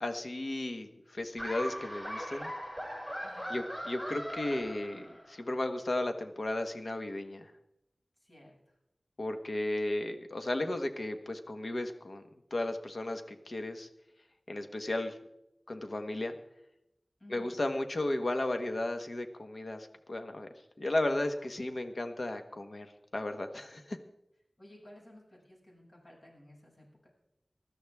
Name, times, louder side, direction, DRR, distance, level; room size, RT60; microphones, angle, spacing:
voice 1, 0.0-2.5 3.5-7.5 9.2-12.2 12.5-13.9 14.5-15.1 15.7-16.3 17.3-20.5 20.8-22.9 23.1-24.0, left 1 dB, 65° left, 6 dB, 1.3 m, -34 dB
Laughter, 1.4-5.4, equal, 15° left, 6.2 m, -40 dB
voice 2, 3.2-3.6 8.2-8.7 17.2-17.6 21.0-21.6 24.6-27.1, left 1 dB, 45° left, -2 dB, 6.7 m, -55 dB
20.0 x 13.5 x 3.6 m, 0.84 s
wide cardioid pair, 70°, 0 cm